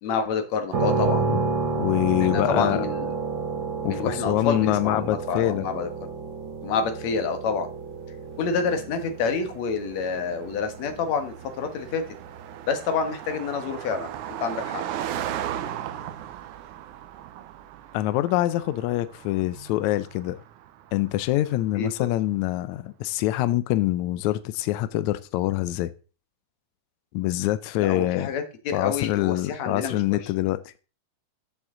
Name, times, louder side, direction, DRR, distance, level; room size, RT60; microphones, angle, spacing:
voice 1, 0.0-1.4 2.2-3.1 3.8-5.9 6.6-7.7 8.4-12.0 12.7-14.8 21.8-22.1 27.8-30.3, left 5 dB, 60° left, 2.4 m, -28 dB
sound 1, 0.7-14.5, right 4 dB, 45° right, 1.8 m, -31 dB
voice 2, 1.8-2.8 3.8-5.6 17.9-20.4 20.9-25.9 27.1-28.3 28.7-30.7, left 15 dB, 90° left, 1.6 m, -25 dB
Car passing by, 8.6-22.3, right 11 dB, 75° right, 2.0 m, -38 dB
12.5 x 7.2 x 3.8 m
omnidirectional pair, 4.0 m